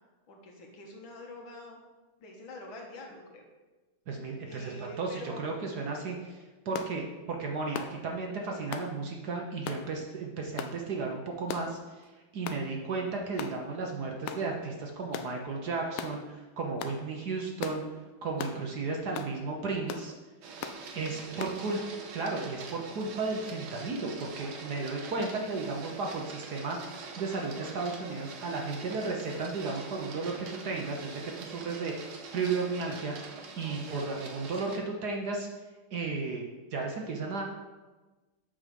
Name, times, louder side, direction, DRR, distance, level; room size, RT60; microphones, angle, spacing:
voice 1, 0.3-1.8 2.2-3.4 4.4-5.6 21.0-21.5 34.2-34.4, left 2 dB, 70° left, 0 dB, 2.1 m, -46 dB
voice 2, 4.1-17.8 18.2-20.1 20.9-21.8 22.1-33.1 33.6-35.5 35.9-36.5 36.7-37.4, right 3 dB, 55° right, 1 dB, 1.3 m, -34 dB
sound 1, 6.7-6.9 7.7-8.0 8.7-8.9 9.7-9.8 10.6-10.8 11.5-11.8 12.5-12.6 13.4-13.6 14.3-14.5 15.1-15.3 16.0-16.2 16.8-17.0 17.6-17.8 18.4-18.6 19.1-19.3 19.9-20.1 20.6-20.8 21.4-21.6, left 8 dB, 85° left, 1.5 m, -37 dB
Printer, 20.4-34.8, right 4 dB, 75° right, 1.8 m, -44 dB
7.3 x 6.1 x 5.2 m, 1.2 s
omnidirectional pair, 2.3 m